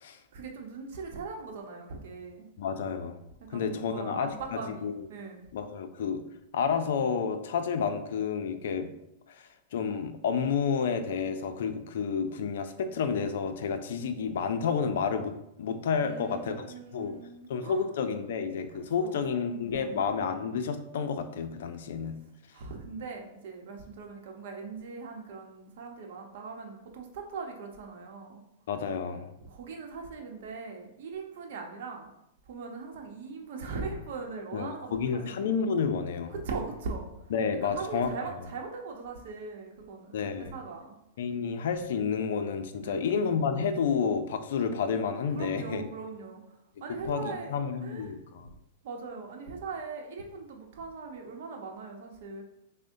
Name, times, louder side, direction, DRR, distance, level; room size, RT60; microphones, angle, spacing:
voice 1, 0.3-2.5 3.4-5.4 16.0-17.9 19.0-19.9 22.5-28.4 29.5-32.1 32.5-35.4 36.3-37.1 37.6-41.0 42.8-43.1 45.3-46.4 46.8-48.1 48.8-52.4, right 4 dB, 65° right, 2 dB, 0.8 m, -40 dB
voice 2, 2.6-3.2 3.5-4.9 5.5-6.2 6.5-8.9 9.3-9.4 9.7-15.3 15.6-16.6 16.9-17.2 17.5-22.1 28.7-29.3 34.5-36.3 37.3-38.1 40.1-40.6 41.2-45.9 47.0-48.5, left 6 dB, 70° left, 8 dB, 0.4 m, -30 dB
6.1 x 2.1 x 2.6 m, 0.83 s
hypercardioid pair, 125°, 0 cm